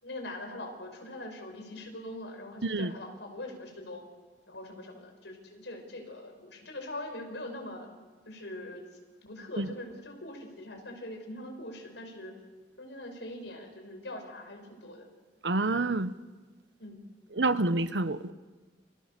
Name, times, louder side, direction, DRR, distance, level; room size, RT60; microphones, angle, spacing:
voice 1, 0.0-4.1 4.5-7.9 8.3-8.8 9.2-12.4 12.8-15.1 16.8-17.1, left 1 dB, 80° left, 5.9 m, -42 dB
voice 2, 15.4-16.1 17.4-18.3, right 2 dB, 80° right, 1.1 m, -28 dB
30.0 x 26.5 x 6.8 m
head